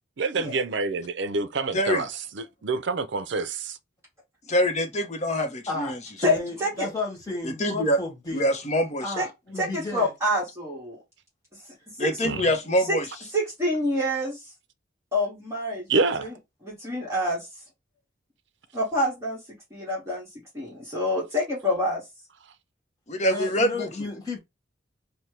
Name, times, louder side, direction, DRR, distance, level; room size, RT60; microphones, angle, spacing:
voice 1, 0.2-2.1 2.3-3.8 12.2-12.5 15.9-16.3, right 3 dB, 70° right, 0.5 m, -27 dB
voice 2, 1.7-2.0 4.5-6.0 7.4-8.0 8.3-9.1 12.0-13.1 23.1-23.9, equal, 35° left, 0.7 m, -25 dB
voice 3, 5.7-8.4 9.0-10.1 23.2-24.4, left 3 dB, 20° left, 1.4 m, -33 dB
voice 4, 6.2-6.9 9.2-9.3 9.6-11.0 12.0-12.2 12.9-13.0 13.3-14.4 15.1-15.9 16.2-16.3 16.6-17.5 18.7-19.4 19.7-20.3 20.5-22.0, left 1 dB, 15° right, 1.4 m, -27 dB
4.3 x 2.2 x 3.2 m
head